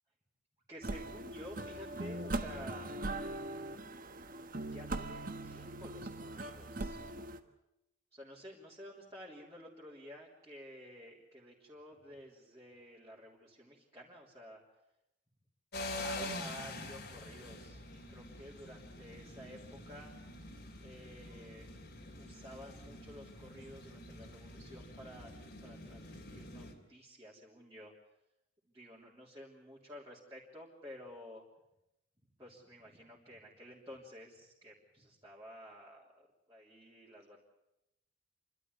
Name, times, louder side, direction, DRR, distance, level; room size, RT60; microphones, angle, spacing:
voice 1, 0.7-2.9 4.7-7.0 8.1-14.6 15.9-20.1 20.8-21.8 22.1-25.3 25.6-27.9 28.7-31.4 32.4-37.4, equal, 20° right, -6 dB, 3.5 m, -52 dB
sound 1, 0.8-7.4, right 2 dB, 45° right, 1.3 m, -41 dB
sound 2, 15.7-26.7, left 1 dB, 55° left, 3.1 m, -46 dB
29.0 x 12.5 x 9.6 m, 0.89 s
head